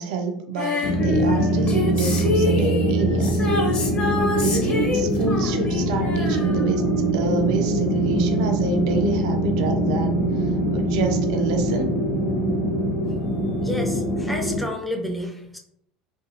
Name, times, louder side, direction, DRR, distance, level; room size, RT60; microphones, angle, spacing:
voice 1, 0.0-3.4 4.3-6.9 7.1-10.2 10.7-12.0, right 4 dB, 60° right, 5 dB, 0.4 m, -28 dB
Female singing, 0.6-7.2 7.5-7.6, left 2 dB, 30° left, 0.8 m, -27 dB
sound 1, 0.8-14.6, right 1 dB, 80° left, 0.8 m, -23 dB
sound 2, 1.0-14.0, left 6 dB, 65° left, 0.4 m, -33 dB
voice 2, 13.6-15.6, equal, ahead, 2 dB, 0.5 m, -30 dB
2.5 x 2.5 x 2.6 m, 0.76 s
figure-of-eight pair, 70°, 4 cm